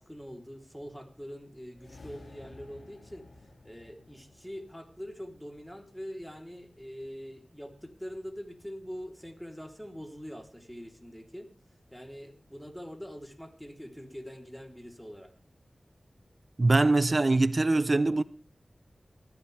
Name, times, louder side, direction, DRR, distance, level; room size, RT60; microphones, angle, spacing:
voice 1, 0.0-3.2 3.6-11.5 11.9-15.3, equal, 5° left, 3.6 m, -43 dB
sound 1, 1.7-6.1, left 2 dB, 90° left, 2.4 m, -54 dB
voice 2, 16.6-18.2, right 2 dB, 50° right, 0.7 m, -23 dB
19.0 x 14.5 x 3.5 m
cardioid pair, 40°, 0 cm